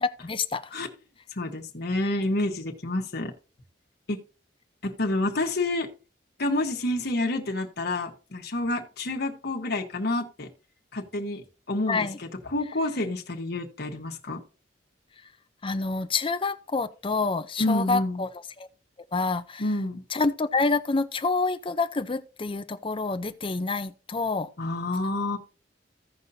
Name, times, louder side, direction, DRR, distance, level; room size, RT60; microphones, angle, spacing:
voice 1, 0.0-0.6 11.9-12.2 15.6-18.3 19.1-19.6 20.1-24.5, left 3 dB, 30° left, 0.6 m, -27 dB
voice 2, 1.3-3.3 4.1-4.2 4.8-5.9 6.4-10.5 10.9-14.4 17.6-18.3 19.6-20.0 24.6-25.4, left 2 dB, 60° left, 1.3 m, -28 dB
16.0 x 5.5 x 2.7 m
head